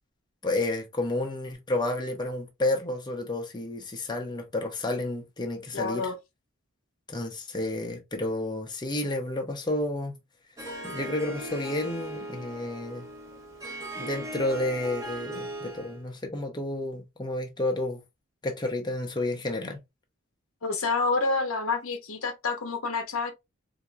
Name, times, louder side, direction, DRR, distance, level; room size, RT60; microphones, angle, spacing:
voice 1, 0.4-6.1 7.1-10.1 10.8-13.1 14.0-18.0 18.4-19.8, left 2 dB, 20° left, 0.8 m, -31 dB
voice 2, 5.7-6.2 20.6-23.3, left 4 dB, 85° left, 1.0 m, -28 dB
Harp, 10.6-16.0, right 1 dB, 15° right, 1.2 m, -39 dB
4.3 x 2.8 x 2.4 m
head